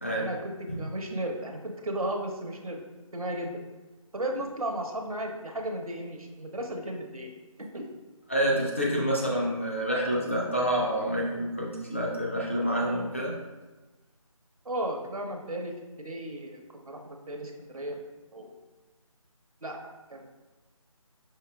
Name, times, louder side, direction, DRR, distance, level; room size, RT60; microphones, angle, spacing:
voice 1, 0.1-0.5 0.8-2.8 3.1-3.5 4.1-7.3 7.7-7.8 14.6-18.0 18.3-18.5 19.6-19.8 20.1-20.4, right 1 dB, 75° right, 2 dB, 0.8 m, -35 dB
voice 2, 8.3-13.3, equal, 20° left, -5 dB, 0.5 m, -28 dB
5.6 x 3.2 x 2.2 m, 1.2 s
figure-of-eight pair, 165°, 18 cm